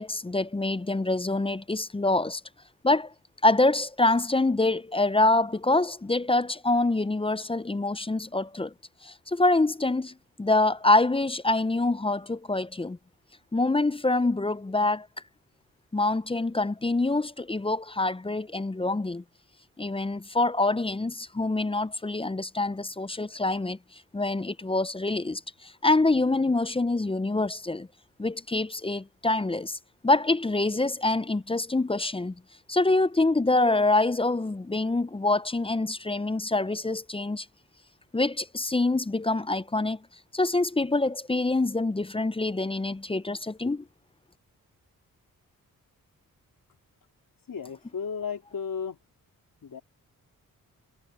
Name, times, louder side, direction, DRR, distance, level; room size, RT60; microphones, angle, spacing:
voice 1, 0.0-2.4 2.8-3.1 3.4-8.7 9.0-13.0 13.5-15.1 15.9-19.2 19.8-27.9 28.2-29.8 30.0-32.3 32.7-37.5 38.1-40.0 40.3-43.8, left 2 dB, 15° left, 0.6 m, -25 dB
voice 2, 47.5-49.0 49.6-49.8, left 6 dB, 65° left, 3.9 m, -34 dB
cardioid pair, 50°, 36 cm